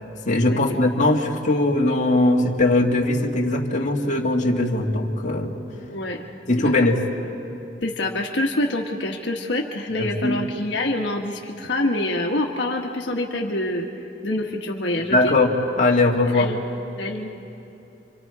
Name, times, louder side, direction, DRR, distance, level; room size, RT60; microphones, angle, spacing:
voice 1, 0.3-5.5 6.5-7.0 10.0-10.4 15.1-15.5 15.8-16.5, left 2 dB, 45° left, 0 dB, 2.0 m, -20 dB
voice 2, 5.9-6.2 6.6-6.7 7.8-13.9 14.2-15.3 16.3-16.6 17.0-17.3, left 1 dB, 75° left, 0 dB, 1.4 m, -26 dB
29.5 x 25.0 x 4.8 m, 2.9 s
head